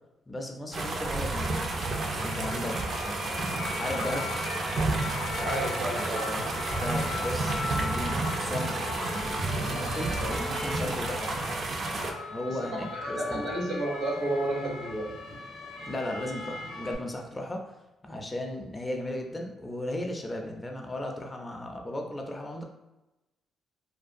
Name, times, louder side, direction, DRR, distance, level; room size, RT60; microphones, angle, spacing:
voice 1, 0.3-4.3 6.8-8.8 9.2-11.4 12.3-13.4 15.8-17.7 18.0-22.6, left 1 dB, 20° left, 2 dB, 0.4 m, -36 dB
sound 1, 0.7-12.1, right 2 dB, 50° right, 0.4 m, -31 dB
sound 2, 1.9-16.9, left 3 dB, 80° left, 0.5 m, -39 dB
voice 2, 5.4-6.5 12.5-12.6 12.9-15.1, right 1 dB, 80° right, -2 dB, 0.8 m, -31 dB
2.6 x 2.2 x 2.5 m, 1.0 s
cardioid pair, 90°, 0 cm